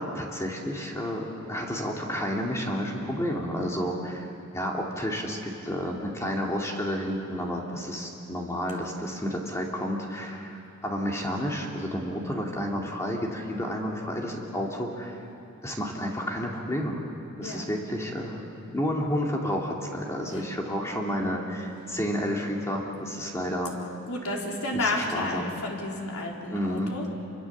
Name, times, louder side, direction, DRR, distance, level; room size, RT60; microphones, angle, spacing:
voice 1, 0.0-4.3 4.5-15.2 15.6-17.0 17.4-18.4 18.7-23.7 24.7-25.5 26.5-26.9, equal, 15° left, -1 dB, 2.5 m, -31 dB
voice 2, 24.1-27.1, left 2 dB, 85° left, -1 dB, 4.1 m, -31 dB
28.0 x 24.5 x 7.3 m, 2.8 s
head